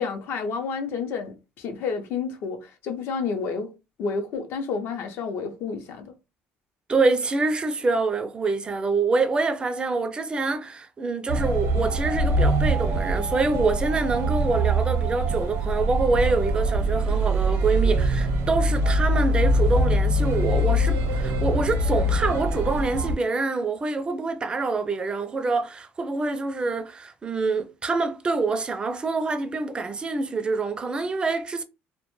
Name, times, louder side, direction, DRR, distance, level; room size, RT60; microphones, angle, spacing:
voice 1, 0.0-3.7 4.0-6.1, left 5 dB, 65° left, 0.6 m, -30 dB
voice 2, 6.9-31.6, right 3 dB, 20° right, 0.3 m, -26 dB
sound 1, 11.3-23.1, right 1 dB, 75° right, 0.6 m, -23 dB
2.1 x 2.1 x 3.0 m
cardioid pair, 120°, 4 cm